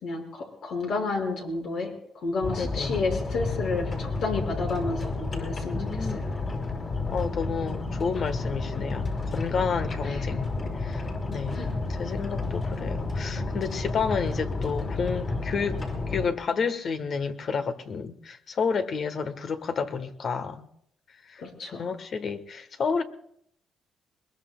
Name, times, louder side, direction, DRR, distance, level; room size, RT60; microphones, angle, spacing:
voice 1, 0.0-6.3 10.0-10.4 11.5-11.7 21.4-21.9, left 3 dB, 70° left, 5.1 m, -31 dB
sound 1, 2.4-16.3, left 3 dB, 40° left, 5.4 m, -31 dB
voice 2, 2.6-3.0 5.7-6.2 7.1-10.5 10.8-11.6 11.9-15.8 16.1-20.7 21.3-21.4 21.7-23.0, left 5 dB, 55° left, 1.2 m, -30 dB
22.5 x 21.5 x 2.3 m
cardioid pair, 90°, 0 cm